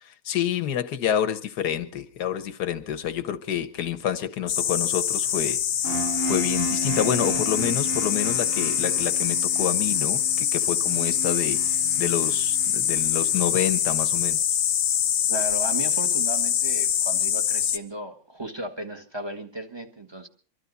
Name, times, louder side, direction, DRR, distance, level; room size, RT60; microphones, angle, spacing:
voice 1, 0.0-5.6 6.3-11.6 12.0-14.4, left 10 dB, 55° left, 1.4 m, -28 dB
sound 1, 4.5-17.8, left 9 dB, 90° left, 1.9 m, -24 dB
sound 2, 5.8-13.6, right 2 dB, 65° right, 0.5 m, -34 dB
voice 2, 15.3-20.3, right 1 dB, 15° right, 1.2 m, -35 dB
24.5 x 13.0 x 4.1 m
omnidirectional pair, 2.4 m